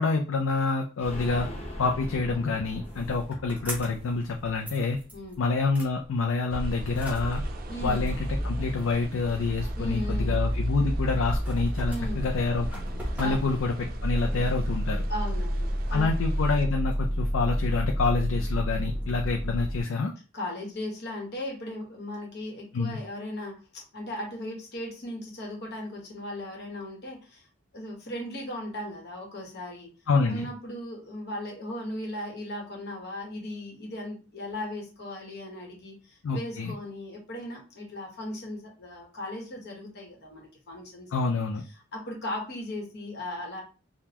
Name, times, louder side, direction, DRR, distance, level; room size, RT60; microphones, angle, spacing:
voice 1, 0.0-1.5 1.8-5.0 5.4-7.4 7.8-12.8 13.2-15.1 15.9-20.1 22.7-23.0 30.1-30.5 36.2-36.7 41.1-41.6, left 4 dB, 85° left, 2 dB, 0.4 m, -27 dB
sound 1, 1.0-6.6 6.9-7.0 7.3-7.4, left 1 dB, 30° left, 0.7 m, -41 dB
sound 2, 2.8-4.2 4.4-5.3 5.7-5.9 6.8-19.8, equal, 10° right, 0.9 m, -31 dB
sound 3, 6.5-16.7, right 1 dB, 45° right, 0.4 m, -36 dB
voice 2, 7.7-8.1 9.8-10.4 11.8-12.2 13.2-13.5 15.1-16.1 20.3-27.5 27.7-29.9 30.3-41.4 41.9-43.6, left 1 dB, 55° left, 0 dB, 1.1 m, -37 dB
3.6 x 2.2 x 2.9 m, 0.34 s
head